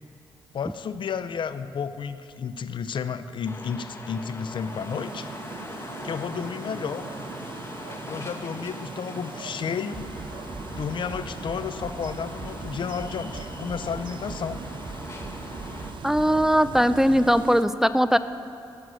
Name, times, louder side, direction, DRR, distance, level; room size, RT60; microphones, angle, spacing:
voice 1, 0.5-5.3 6.0-7.1 8.1-10.1 10.7-14.6, left 6 dB, 65° left, 12 dB, 0.5 m, -32 dB
sound 1, 3.4-15.9, left 2 dB, 30° left, 1.3 m, -41 dB
sound 2, 4.3-17.6, right 6 dB, 65° right, 0.6 m, -41 dB
Bass drum, 9.9-17.3, right 3 dB, 45° right, 2.6 m, -40 dB
voice 2, 16.0-18.2, equal, 5° right, 12 dB, 0.4 m, -20 dB
13.5 x 7.7 x 6.3 m, 2.8 s
cardioid pair, 65°, 9 cm